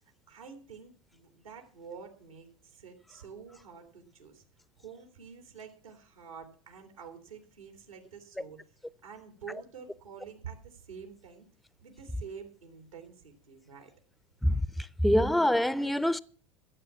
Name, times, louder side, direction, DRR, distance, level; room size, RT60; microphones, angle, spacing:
voice 1, 0.3-4.4 4.8-8.6 9.0-11.5 11.8-13.9, right 6 dB, 90° right, 2.9 m, -48 dB
voice 2, 15.0-16.2, left 1 dB, ahead, 0.5 m, -24 dB
14.5 x 7.5 x 7.2 m
hypercardioid pair, 90°, 17 cm